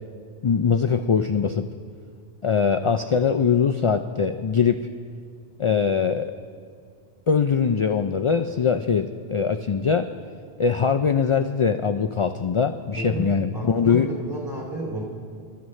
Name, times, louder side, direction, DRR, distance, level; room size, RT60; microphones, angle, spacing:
voice 1, 0.4-1.7 2.4-4.9 5.6-6.3 7.3-10.1 10.6-14.1, left 6 dB, 55° left, 7 dB, 0.3 m, -22 dB
voice 2, 12.9-15.0, right 1 dB, 25° right, -3 dB, 2.9 m, -32 dB
25.5 x 12.5 x 3.2 m, 2.2 s
omnidirectional pair, 1.1 m